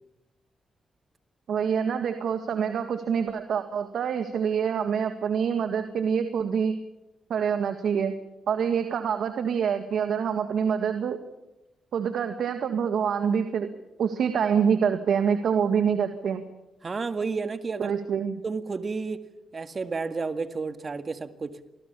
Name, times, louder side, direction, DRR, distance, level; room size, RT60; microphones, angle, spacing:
voice 1, 1.5-6.7 7.3-8.1 8.5-11.2 11.9-13.7 14.0-16.4 17.8-18.4, right 7 dB, 75° right, 8 dB, 1.9 m, -26 dB
voice 2, 16.8-18.0 18.4-19.2 19.5-21.6, right 4 dB, 40° right, 11 dB, 2.0 m, -31 dB
27.0 x 20.5 x 7.0 m, 0.96 s
cardioid pair, 80°, 0 cm